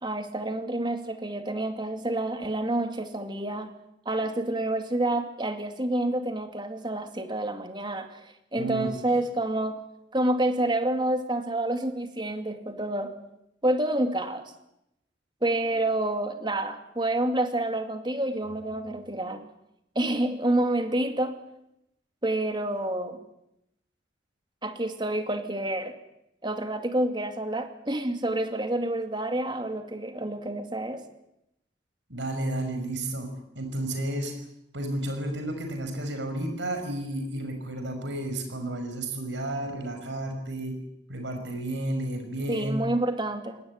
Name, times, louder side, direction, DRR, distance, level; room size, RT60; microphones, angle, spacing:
voice 1, 0.0-3.7 4.1-8.2 8.5-9.8 10.1-13.1 13.6-14.5 15.4-19.4 20.0-21.3 22.2-23.2 24.6-25.9 26.4-31.0 42.5-43.6, right 1 dB, 25° right, 7 dB, 2.4 m, -28 dB
voice 2, 8.5-8.9 32.1-33.3 33.6-34.3 34.7-40.8 41.1-42.8, right 1 dB, 80° right, 5 dB, 5.7 m, -32 dB
21.5 x 18.5 x 9.7 m, 0.83 s
head